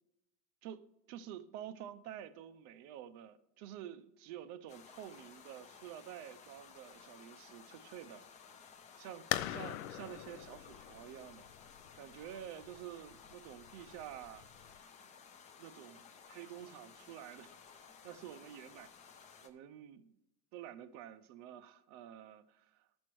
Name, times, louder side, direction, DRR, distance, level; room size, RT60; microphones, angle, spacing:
voice 1, 0.6-8.6 9.0-11.6 12.0-14.5 14.8-14.9 15.6-18.9 19.4-20.1 20.5-22.9, right 10 dB, 45° right, 0.5 m, -49 dB
sound 1, 4.7-19.5, left 6 dB, 20° left, 0.4 m, -57 dB
Balloon burst under brick arch, 9.3-14.8, left 14 dB, 85° left, 0.5 m, -43 dB
14.0 x 6.2 x 3.0 m
supercardioid pair, 145°, 39 cm